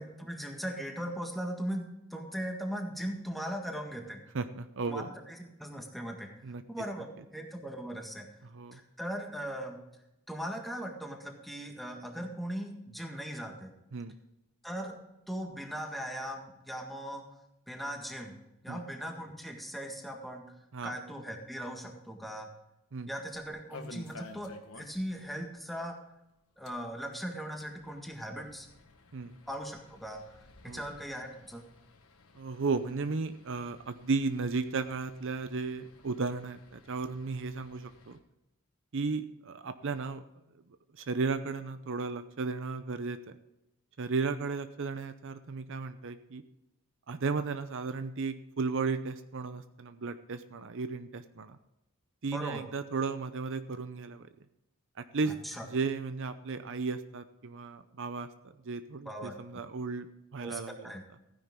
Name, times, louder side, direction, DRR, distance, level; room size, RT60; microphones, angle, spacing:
voice 1, 0.0-4.2 4.8-6.3 6.7-7.1 7.3-8.3 8.7-9.8 10.3-13.7 14.6-15.0 15.3-17.2 17.7-18.3 18.6-20.4 20.8-22.5 23.1-26.0 26.6-28.7 29.5-30.3 30.6-31.6 52.3-52.7 55.3-55.7 59.1-59.3 60.4-61.1, equal, ahead, 2 dB, 1.7 m, -39 dB
voice 2, 4.3-5.1 6.4-6.6 8.5-8.8 13.9-14.1 18.7-18.8 20.7-20.9 22.9-23.1 29.1-29.4 30.7-30.8 32.4-38.2 38.9-40.2 41.0-43.4 44.0-46.4 47.1-51.6 52.2-54.3 55.0-55.3 55.6-58.3 58.6-60.1 60.3-60.9, right 4 dB, 60° right, 11 dB, 0.7 m, -34 dB
sound 1, 23.3-25.2 25.5-25.6 25.9-26.0 26.5-38.2, left 2 dB, 70° left, 1.5 m, -54 dB
15.0 x 10.0 x 3.7 m, 0.91 s
head